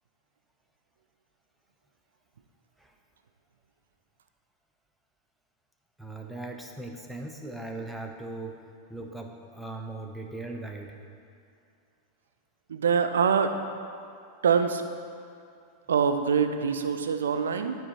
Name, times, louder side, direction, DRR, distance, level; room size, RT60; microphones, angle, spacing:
voice 1, 6.0-8.6 8.9-11.0, right 2 dB, ahead, 2 dB, 0.7 m, -39 dB
voice 2, 12.7-13.5 14.4-14.8 15.9-17.8, right 6 dB, 65° right, 8 dB, 0.4 m, -24 dB
11.5 x 4.6 x 4.3 m, 2.4 s
figure-of-eight pair, 90°, 0 cm